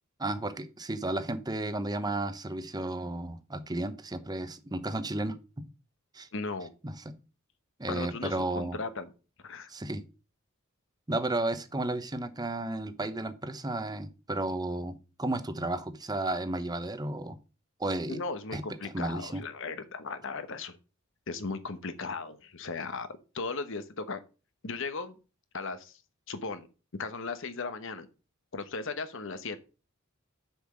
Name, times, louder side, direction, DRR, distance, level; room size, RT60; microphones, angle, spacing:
voice 1, 0.2-5.4 6.1-6.3 6.8-7.2 7.8-8.8 9.7-10.0 11.1-17.4 17.8-18.2 18.5-19.4, right 2 dB, 20° right, 10 dB, 0.8 m, -33 dB
voice 2, 6.3-6.7 7.9-9.1 9.4-9.7 18.1-20.8 21.3-23.1 23.3-24.2 24.6-25.2 25.5-26.0 26.3-26.7 27.0-28.1 28.5-29.6, left 4 dB, 65° left, 11 dB, 1.0 m, -37 dB
7.1 x 5.8 x 6.2 m, 0.33 s
head